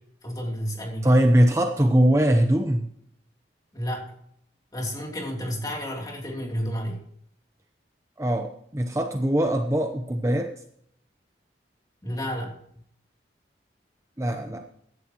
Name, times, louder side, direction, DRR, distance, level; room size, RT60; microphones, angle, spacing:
voice 1, 0.2-1.1 3.7-4.1 4.7-7.0 12.0-12.5, equal, 20° left, 0 dB, 3.0 m, -31 dB
voice 2, 1.0-2.9 8.2-10.5 14.2-14.6, right 1 dB, 15° right, 4 dB, 0.8 m, -21 dB
16.5 x 11.0 x 3.0 m, 0.67 s
head